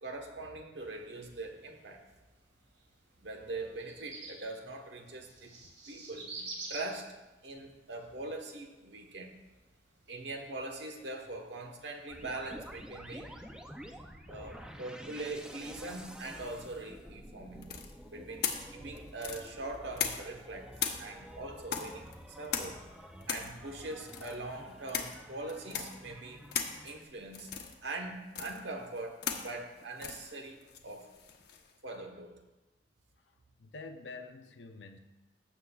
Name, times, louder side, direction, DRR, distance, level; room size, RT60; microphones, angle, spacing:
voice 1, 0.0-2.0 3.2-5.6 5.9-7.2 7.4-9.4 10.1-13.3 14.3-17.8 18.1-20.7 21.0-22.8 23.3-26.5 26.8-27.5 27.8-31.1 31.8-32.4, right 2 dB, 75° right, 3 dB, 1.2 m, -42 dB
sound 1, 0.7-12.6, right 3 dB, 90° right, 2.5 m, -51 dB
sound 2, 12.1-27.0, equal, 5° right, 0.5 m, -50 dB
sound 3, 17.6-20.4 20.8-31.7, left 7 dB, 65° left, 0.9 m, -39 dB
voice 2, 33.2-35.0, left 3 dB, 85° left, 6 dB, 0.7 m, -48 dB
16.0 x 7.1 x 2.4 m, 1.1 s
head